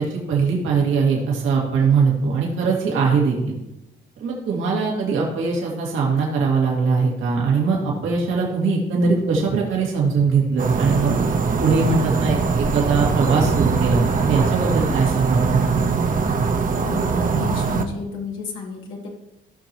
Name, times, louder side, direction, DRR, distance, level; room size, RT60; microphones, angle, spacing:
voice 1, 0.0-3.5 4.2-11.1 11.6-15.7, right 5 dB, 80° right, -2 dB, 2.4 m, -21 dB
sound 1, 10.6-17.8, right 5 dB, 45° right, 1.0 m, -21 dB
voice 2, 16.8-19.2, left 4 dB, 85° left, -1 dB, 1.7 m, -31 dB
16.5 x 6.0 x 3.1 m, 0.89 s
cardioid pair, 90°, 20 cm